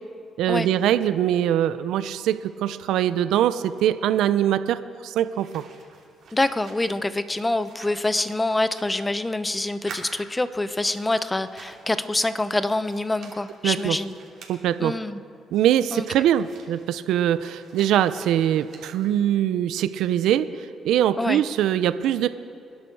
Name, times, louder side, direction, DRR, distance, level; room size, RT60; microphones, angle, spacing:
voice 1, 0.4-5.6 13.6-14.0 14.5-14.9 15.5-22.3, right 11 dB, 85° right, 13 dB, 0.5 m, -22 dB
sound 1, 5.3-9.5 9.7-12.1 12.4-14.5 15.5-19.3, right 5 dB, 65° right, 3.0 m, -48 dB
voice 2, 6.3-14.1 14.8-15.2 15.9-16.0 21.2-21.4, left 2 dB, 15° left, 12 dB, 0.8 m, -26 dB
27.5 x 10.5 x 4.7 m, 2.6 s
cardioid pair, 90°, 0 cm